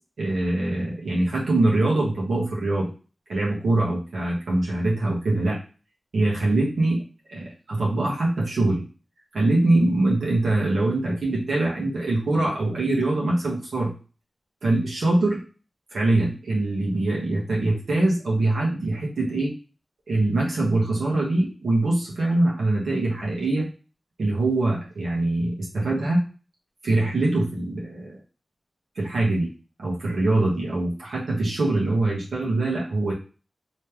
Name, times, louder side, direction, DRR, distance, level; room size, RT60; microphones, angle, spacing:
voice 1, 0.2-2.9 3.3-5.6 6.1-7.0 7.3-8.8 9.3-13.9 14.6-15.4 15.9-19.5 20.1-23.7 24.2-26.2 26.8-28.2 28.9-29.5 29.8-33.1, right 2 dB, 85° right, -5 dB, 1.4 m, -23 dB
3.2 x 3.1 x 3.4 m, 0.35 s
cardioid pair, 45°, 0 cm